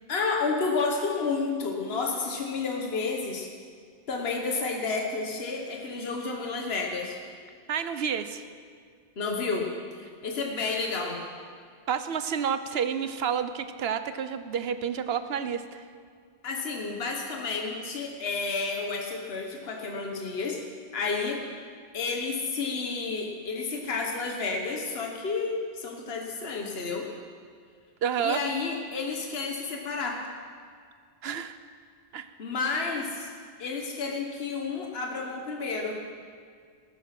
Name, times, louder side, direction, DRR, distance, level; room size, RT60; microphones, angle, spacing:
voice 1, 0.1-3.5 4.1-7.2 9.2-9.7 10.0-11.2 16.4-20.6 20.9-21.4 21.9-27.1 28.2-30.2 32.4-33.3 33.6-36.0, left 4 dB, 75° left, 1 dB, 1.4 m, -31 dB
voice 2, 7.7-8.4 11.9-15.8 28.0-28.4 31.2-31.6 32.1-32.3, right 7 dB, 75° right, 11 dB, 1.0 m, -29 dB
18.0 x 9.7 x 5.9 m, 2.1 s
omnidirectional pair, 1.1 m